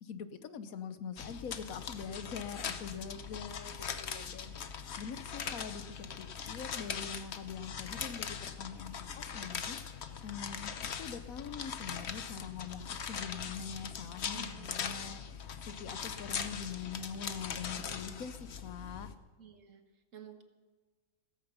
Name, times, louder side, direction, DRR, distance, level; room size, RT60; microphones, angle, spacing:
voice 1, 0.0-19.1, left 6 dB, 75° left, 12 dB, 1.3 m, -44 dB
sound 1, 1.2-19.1, left 7 dB, 55° left, 1.1 m, -41 dB
voice 2, 14.3-15.4 19.4-20.4, right 7 dB, 65° right, 7 dB, 1.7 m, -54 dB
17.0 x 14.0 x 5.6 m, 1.3 s
omnidirectional pair, 1.5 m